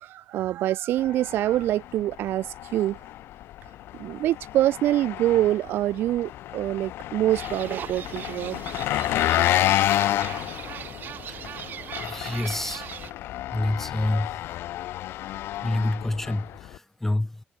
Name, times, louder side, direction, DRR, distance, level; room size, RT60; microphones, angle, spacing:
voice 1, 0.0-3.0 4.0-8.6 9.4-9.5, right 13 dB, 75° right, 0.4 m, -25 dB
Engine, 1.0-16.8, left 14 dB, 85° left, 1.4 m, -30 dB
sound 1, 7.3-13.1, right 10 dB, 55° right, 0.9 m, -39 dB
voice 2, 12.0-12.9 13.5-14.3 15.6-17.4, left 1 dB, 10° left, 0.5 m, -27 dB
cardioid pair, 135°, 4 cm